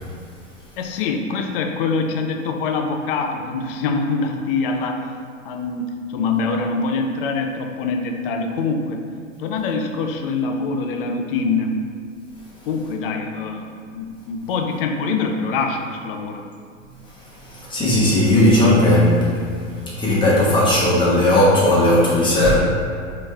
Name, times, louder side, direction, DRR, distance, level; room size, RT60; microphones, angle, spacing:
voice 1, 0.8-5.0 5.4-9.0 9.4-11.7 12.6-16.4, left 4 dB, 45° left, 4 dB, 0.5 m, -24 dB
voice 2, 17.3-22.5, left 1 dB, 10° left, -8 dB, 1.4 m, -17 dB
4.2 x 3.2 x 3.4 m, 2.2 s
figure-of-eight pair, 100°, 39 cm